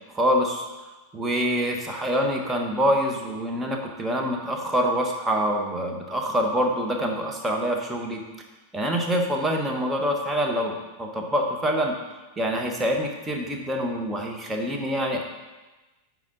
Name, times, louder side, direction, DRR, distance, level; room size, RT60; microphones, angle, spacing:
voice 1, 0.1-0.7 1.1-8.2 8.7-11.9 12.4-15.2, equal, 10° right, 1 dB, 1.1 m, -25 dB
8.9 x 4.8 x 3.9 m, 1.1 s
figure-of-eight pair, 90°, 0 cm